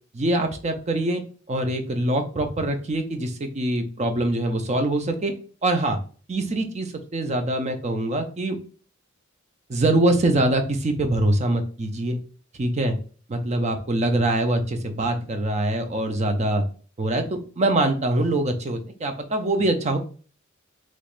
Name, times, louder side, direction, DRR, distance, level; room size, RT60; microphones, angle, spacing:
voice 1, 0.1-5.3 5.6-6.0 6.3-8.6 9.7-12.2 12.6-12.9 13.3-16.6 17.0-20.0, right 1 dB, 35° right, 6 dB, 0.5 m, -24 dB
3.3 x 3.0 x 2.4 m, 0.41 s
head